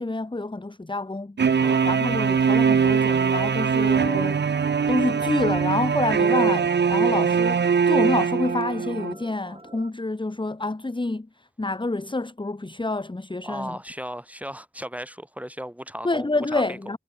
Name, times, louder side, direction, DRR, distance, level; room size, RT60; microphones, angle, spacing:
voice 1, 0.0-1.4 1.8-4.4 4.9-13.8 16.0-17.0, left 2 dB, 25° left, 1.1 m, -28 dB
sound 1, 1.4-9.1, right 6 dB, 55° right, 0.6 m, -21 dB
voice 2, 1.6-1.9 13.4-16.9, equal, 5° right, 5.3 m, -36 dB
sound 2, 2.3-9.9, right 2 dB, 25° right, 1.3 m, -47 dB
cardioid pair, 45°, 21 cm